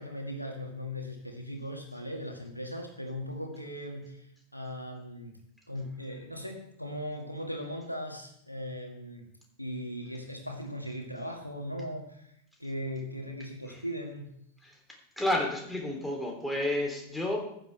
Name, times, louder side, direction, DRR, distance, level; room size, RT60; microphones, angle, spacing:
voice 1, 0.0-4.3 4.5-5.3 5.7-9.3 9.6-12.3 12.6-14.3, equal, 90° left, 2 dB, 1.9 m, -38 dB
voice 2, 15.2-17.4, left 1 dB, 5° left, 0 dB, 3.0 m, -30 dB
14.5 x 10.0 x 3.4 m, 0.74 s
figure-of-eight pair, 90°, 0 cm